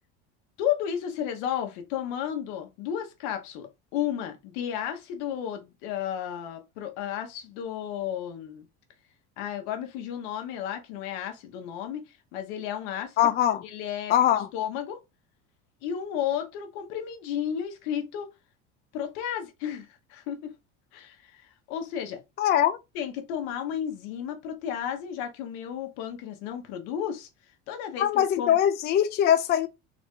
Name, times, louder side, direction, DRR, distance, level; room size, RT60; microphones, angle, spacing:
voice 1, 0.6-8.7 9.4-13.2 13.6-14.1 14.5-15.0 15.8-18.3 18.9-20.5 20.9-21.4 21.7-22.2 22.9-27.3 27.7-28.6, left 9 dB, 80° left, 1.3 m, -33 dB
voice 2, 13.2-13.6 14.1-14.5 22.4-22.8 28.0-29.7, left 10 dB, 30° left, 0.4 m, -22 dB
4.0 x 2.6 x 3.7 m
cardioid pair, 130°, 31 cm